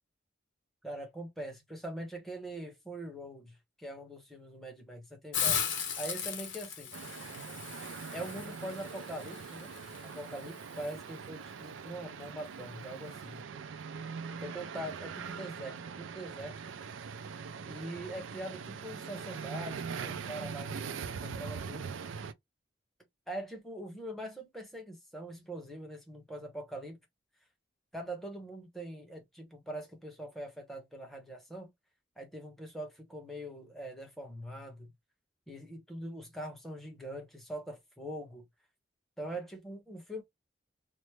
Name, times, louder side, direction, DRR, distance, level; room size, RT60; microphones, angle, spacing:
voice 1, 0.8-7.0 8.1-9.7 10.0-13.4 14.3-16.6 17.7-21.9 23.3-27.0 27.9-31.7 32.2-34.9 35.5-38.5 39.2-40.2, right 1 dB, ahead, 0.9 m, -43 dB
Hiss, 5.3-11.0, left 7 dB, 80° left, 0.9 m, -37 dB
sound 1, 6.9-22.3, right 6 dB, 90° right, 0.4 m, -42 dB
3.1 x 2.0 x 3.1 m
head